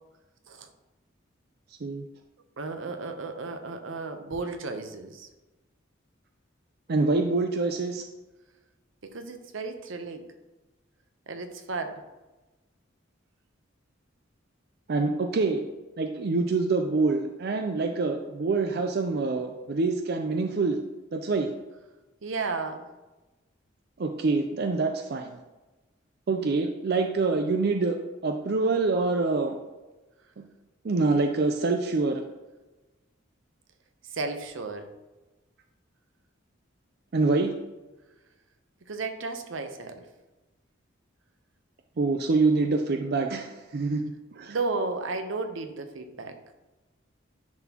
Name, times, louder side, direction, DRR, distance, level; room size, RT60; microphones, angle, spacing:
voice 1, 2.6-5.3 9.0-10.3 11.3-12.0 22.2-22.8 34.1-34.9 38.9-40.1 44.5-46.4, right 3 dB, 80° right, 7 dB, 0.7 m, -33 dB
voice 2, 6.9-8.0 14.9-15.6 16.0-20.8 21.1-21.5 24.0-25.4 26.3-28.0 28.2-29.6 30.8-32.2 37.1-37.5 42.0-44.0 44.3-44.6, right 3 dB, 55° right, 5 dB, 0.5 m, -25 dB
10.5 x 4.1 x 2.9 m, 1.1 s
head